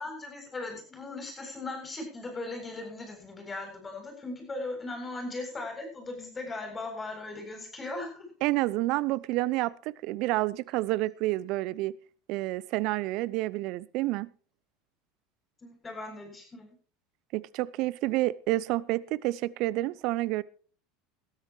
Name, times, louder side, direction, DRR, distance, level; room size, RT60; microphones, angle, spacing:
voice 1, 0.0-8.2 15.6-16.7, left 2 dB, 20° left, 7.9 m, -38 dB
voice 2, 8.4-11.9 12.3-14.3 17.3-20.4, right 18 dB, 55° right, 0.6 m, -29 dB
20.0 x 13.0 x 3.1 m
figure-of-eight pair, 75°, 0 cm